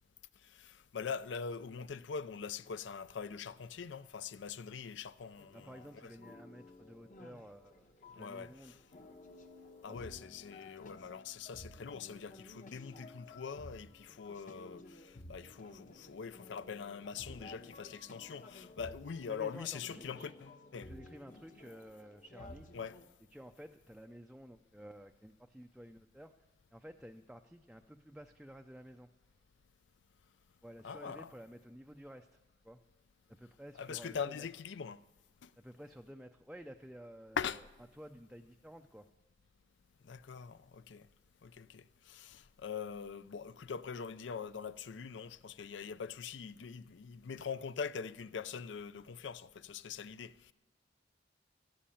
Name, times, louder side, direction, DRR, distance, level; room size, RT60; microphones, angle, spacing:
voice 1, 0.5-6.1 8.2-8.8 9.8-20.9 22.7-23.0 30.8-31.3 33.8-35.0 35.4-35.5 37.4-37.6 40.0-41.1 41.4-50.5, left 6 dB, 70° left, 0.4 m, -43 dB
sound 1, 5.4-23.1, left 2 dB, 45° left, 1.0 m, -54 dB
voice 2, 5.5-7.9 8.2-8.8 9.9-10.0 19.3-20.3 20.8-22.7 23.3-26.3 26.7-29.1 30.6-32.8 33.4-34.5 35.6-37.4 38.0-39.1, equal, 5° right, 0.4 m, -52 dB
13.0 x 11.5 x 8.5 m
head